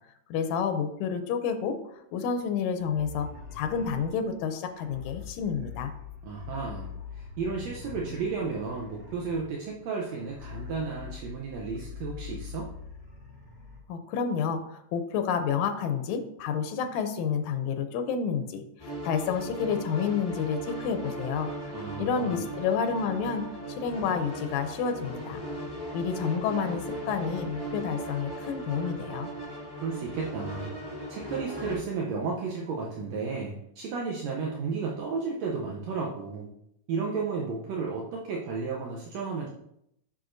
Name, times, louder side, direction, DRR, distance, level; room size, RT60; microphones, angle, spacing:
voice 1, 0.3-1.8 2.1-5.9 13.9-21.5 22.0-23.4 23.7-25.4 25.9-29.3, left 6 dB, 85° left, 8 dB, 2.0 m, -29 dB
sound 1, 2.8-13.8, left 7 dB, 40° right, 2.8 m, -43 dB
voice 2, 6.2-12.7 21.7-22.4 29.7-30.7 31.1-36.5 36.9-39.5, right 4 dB, 75° right, -2 dB, 1.9 m, -33 dB
sound 2, 18.8-31.7, right 1 dB, 10° left, 1.1 m, -38 dB
7.7 x 6.2 x 2.6 m, 0.78 s
omnidirectional pair, 3.3 m